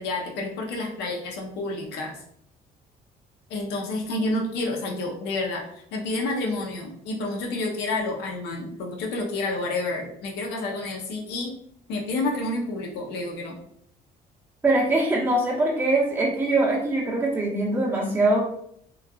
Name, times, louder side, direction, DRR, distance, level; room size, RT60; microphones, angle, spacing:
voice 1, 0.0-2.2 3.5-11.5 11.9-13.6, left 2 dB, 85° left, 0 dB, 0.7 m, -29 dB
voice 2, 14.6-18.4, right 2 dB, 10° right, -5 dB, 0.8 m, -22 dB
3.1 x 2.3 x 2.3 m, 0.70 s
cardioid pair, 110°, 17 cm